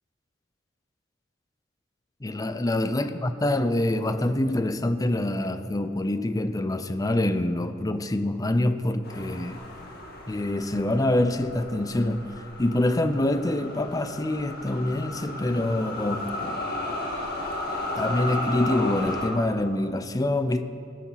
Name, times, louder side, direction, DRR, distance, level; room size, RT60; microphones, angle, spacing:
voice 1, 2.2-9.6 10.3-16.6 18.0-20.6, left 1 dB, 20° left, 0.5 m, -26 dB
sound 1, 9.0-19.3, left 1 dB, 55° left, 1.7 m, -34 dB
18.5 x 7.1 x 5.6 m
head